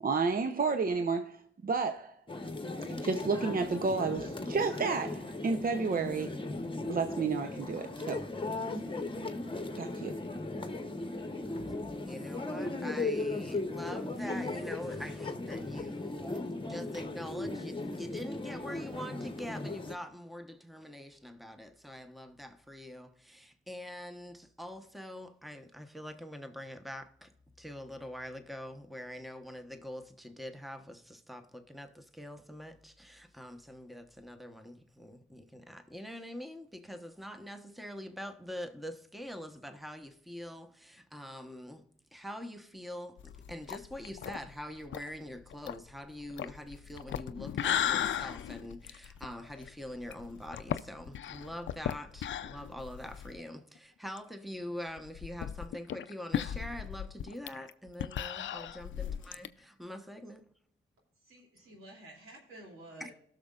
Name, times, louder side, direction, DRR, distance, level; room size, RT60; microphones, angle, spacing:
voice 1, 0.0-2.2 3.0-6.4 6.9-8.3 9.8-10.2, right 4 dB, 45° right, 0.7 m, -31 dB
sound 1, 2.3-19.9, left 2 dB, 25° left, 1.1 m, -37 dB
voice 2, 11.9-27.3 27.6-41.8 42.1-60.4 63.0-63.1, equal, ahead, 1.1 m, -44 dB
sound 2, 43.2-53.4 53.8-53.9 54.2-54.3 55.0-59.5, left 10 dB, 65° left, 0.5 m, -37 dB
voice 3, 61.2-63.1, right 1 dB, 90° right, 2.8 m, -51 dB
18.5 x 6.5 x 2.4 m
supercardioid pair, 50°, 21 cm